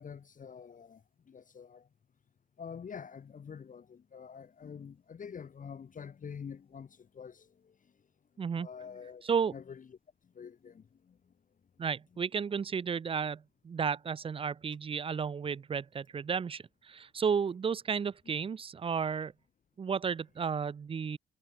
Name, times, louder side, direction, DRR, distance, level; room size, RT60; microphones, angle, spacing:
voice 1, 0.0-1.9 2.6-7.8 8.6-10.0 10.2-11.3, left 6 dB, 40° left, 0.7 m, -47 dB
voice 2, 9.2-9.5 11.8-19.3 19.8-21.2, right 6 dB, 30° right, 0.4 m, -33 dB
hypercardioid pair, 40°, 20 cm